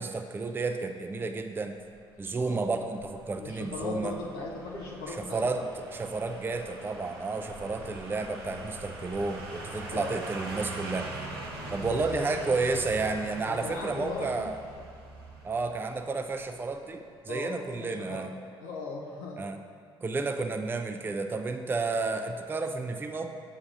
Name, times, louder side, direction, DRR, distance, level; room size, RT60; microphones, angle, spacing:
voice 1, 0.0-1.7 2.2-4.1 5.1-5.7 5.9-11.1 11.7-14.6 15.4-18.3 19.4-19.6 20.0-23.3, right 3 dB, 15° right, 6 dB, 0.4 m, -31 dB
sound 1, 1.9-16.9 17.2-17.3, right 2 dB, 85° right, 0.7 m, -43 dB
voice 2, 3.4-5.6 7.8-7.9 9.9-10.2 12.0-12.5 13.5-14.5 17.3-18.3 18.6-19.4, left 3 dB, 80° left, -4 dB, 0.6 m, -38 dB
7.2 x 6.2 x 2.5 m, 2.1 s
hypercardioid pair, 55°, 13 cm